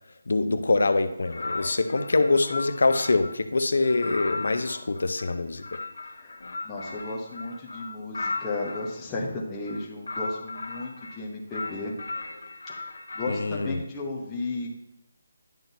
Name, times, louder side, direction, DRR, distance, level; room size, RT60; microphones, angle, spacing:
voice 1, 0.3-5.8 13.3-13.8, left 3 dB, 65° left, 9 dB, 0.6 m, -24 dB
sound 1, 1.3-3.4 3.8-8.9 9.6-11.2 11.5-13.5, left 3 dB, 85° left, 1.1 m, -36 dB
voice 2, 6.6-11.9 12.7-12.9 13.1-14.7, left 2 dB, 10° left, -4 dB, 0.8 m, -34 dB
10.5 x 5.9 x 2.7 m, 0.88 s
hypercardioid pair, 180°, 0 cm